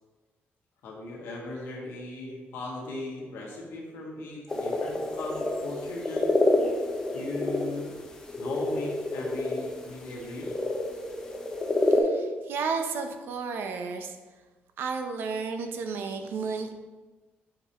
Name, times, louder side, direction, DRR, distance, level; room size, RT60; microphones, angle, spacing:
voice 1, 0.8-6.3 7.1-7.9 8.4-10.5, left 2 dB, 80° left, -2 dB, 1.6 m, -37 dB
sound 1, 4.5-12.0, left 2 dB, 15° left, 0.6 m, -28 dB
voice 2, 11.8-14.2 14.8-16.7, right 5 dB, 60° right, 6 dB, 0.6 m, -32 dB
6.6 x 5.0 x 2.9 m, 1.2 s
cardioid pair, 170°, 4 cm